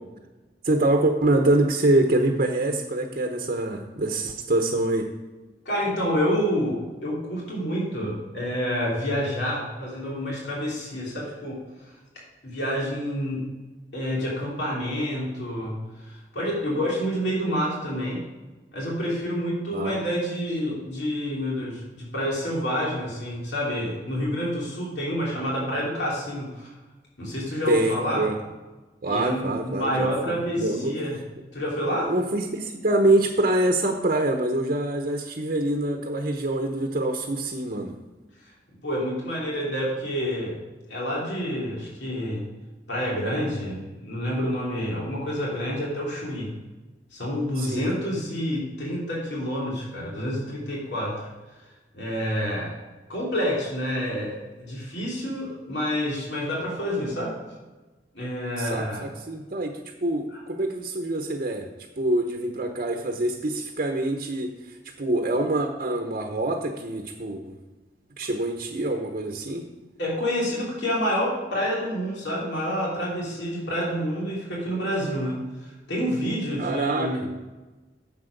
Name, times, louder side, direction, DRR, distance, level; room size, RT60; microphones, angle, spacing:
voice 1, 0.6-5.1 19.7-19.9 27.7-28.4 29.0-30.9 32.1-37.9 47.6-47.8 58.5-61.7 62.0-67.6 68.2-69.7 76.6-77.3, right 2 dB, 45° right, 3 dB, 0.9 m, -25 dB
voice 2, 5.6-11.6 12.4-13.5 13.9-18.2 18.7-26.7 27.2-28.3 29.0-31.2 31.5-32.1 38.8-40.6 40.9-42.4 42.9-46.5 47.1-51.2 51.9-52.7 53.1-57.3 58.1-59.1 70.0-77.4, equal, 70° left, -4 dB, 3.0 m, -28 dB
9.8 x 7.5 x 5.1 m, 1.2 s
head